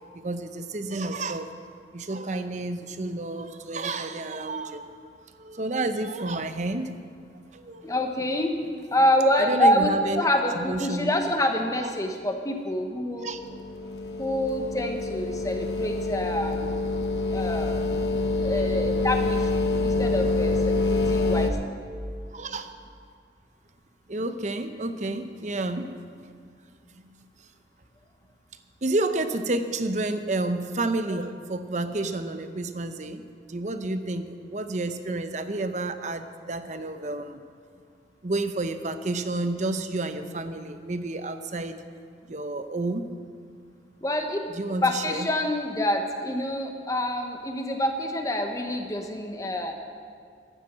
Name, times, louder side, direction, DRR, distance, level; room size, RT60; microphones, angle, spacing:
voice 1, 0.2-1.5 1.9-4.9 5.4-6.9 7.5-8.0 9.4-10.3 10.6-11.1 13.2-13.4 18.5-18.9 22.3-22.7 24.1-25.9 28.8-33.2 33.5-37.4 38.2-41.8 42.3-43.1 44.5-45.3, right 2 dB, 40° right, 9 dB, 0.7 m, -30 dB
voice 2, 7.8-8.5 8.9-9.9 10.2-13.3 14.2-16.7 17.3-17.8 18.4-21.8 44.0-44.4 44.8-49.7, left 1 dB, 20° left, 4 dB, 1.1 m, -26 dB
sound 1, 13.4-21.5, left 3 dB, 70° left, 1.0 m, -26 dB
13.0 x 9.2 x 7.4 m, 2.1 s
head